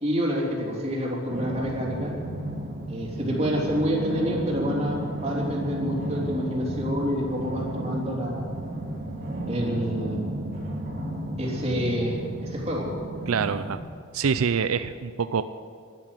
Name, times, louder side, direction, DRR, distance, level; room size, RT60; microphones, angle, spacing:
voice 1, 0.0-2.1 2.9-8.5 9.5-10.2 11.4-12.9, equal, 30° right, -3 dB, 3.4 m, -28 dB
sound 1, 1.3-13.8, right 1 dB, 45° right, 2.9 m, -33 dB
voice 2, 13.3-13.8 14.1-15.4, right 6 dB, 90° right, 12 dB, 0.5 m, -25 dB
12.0 x 11.5 x 9.4 m, 2.2 s
head